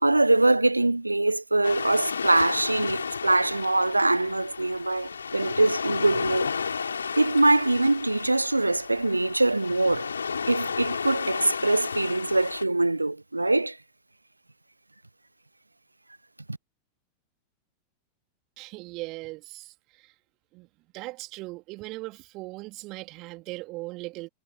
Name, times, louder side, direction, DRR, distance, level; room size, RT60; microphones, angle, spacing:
voice 1, 0.0-6.5 7.2-10.1 10.5-13.8, right 2 dB, 85° right, 0.6 m, -23 dB
sound 1, 1.6-12.6, left 5 dB, 75° left, 5.4 m, -33 dB
voice 2, 18.6-20.1 20.5-20.7 20.9-24.3, right 22 dB, 40° right, 2.5 m, -39 dB
figure-of-eight pair, 90°, 0 cm